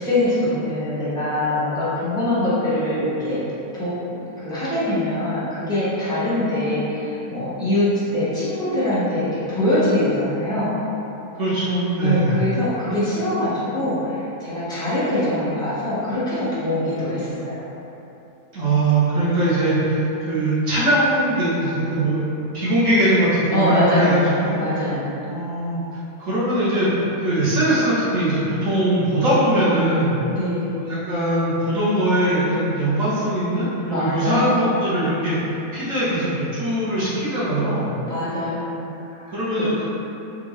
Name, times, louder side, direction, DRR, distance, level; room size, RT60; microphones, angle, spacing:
voice 1, 0.0-3.4 3.7-4.2 4.4-10.8 12.0-17.7 23.5-24.2 24.6-25.2 30.3-30.8 33.9-34.7 38.0-39.7, left 1 dB, 5° left, -12 dB, 0.8 m, -23 dB
voice 2, 11.4-12.4 18.5-22.2 22.5-24.6 25.3-25.8 26.2-30.2 30.8-35.4 35.7-37.9 39.3-39.8, right 1 dB, 60° right, -11 dB, 1.3 m, -21 dB
3.7 x 2.5 x 3.1 m, 3.0 s
omnidirectional pair, 1.6 m